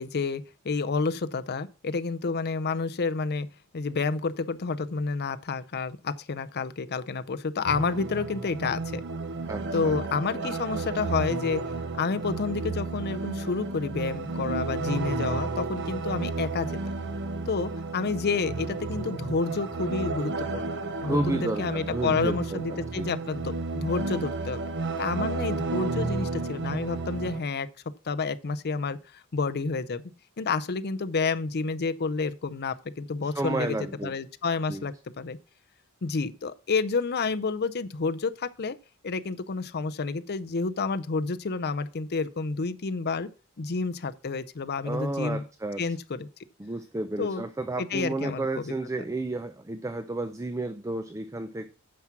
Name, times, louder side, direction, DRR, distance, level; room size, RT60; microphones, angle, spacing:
voice 1, 0.0-3.5 3.7-9.0 9.7-11.6 12.0-16.8 17.5-20.7 21.0-24.6 25.0-27.7 28.1-30.0 30.4-33.8 34.0-35.4 36.0-38.8 39.0-43.3 43.6-45.4 45.8-46.3 47.2-47.4 47.8-48.7, left 4 dB, 45° left, 0.6 m, -29 dB
sound 1, 7.6-27.4, right 3 dB, 55° right, 0.9 m, -32 dB
voice 2, 9.5-10.0 21.0-23.1 33.2-34.1 34.7-34.8 44.8-46.0 46.6-51.7, right 2 dB, 15° right, 0.5 m, -32 dB
9.4 x 5.9 x 5.9 m
head